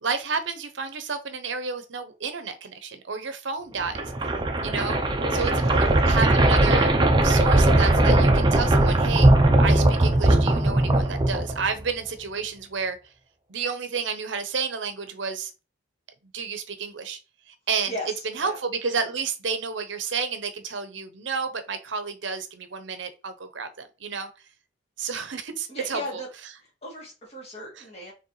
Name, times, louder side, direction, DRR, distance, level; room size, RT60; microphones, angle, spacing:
voice 1, 0.0-4.3 4.6-5.0 5.3-6.9 7.2-9.3 9.6-13.0 13.5-15.5 16.3-17.2 17.5-17.9 18.3-24.3 25.0-26.0 27.8-27.9, right 5 dB, 70° right, 0.7 m, -31 dB
sound 1, 3.8-11.8, right 1 dB, 25° right, 0.6 m, -19 dB
voice 2, 5.3-6.1 17.9-18.6 25.7-26.3 26.6-28.1, left 1 dB, 30° left, 2.1 m, -37 dB
4.6 x 3.4 x 3.1 m
head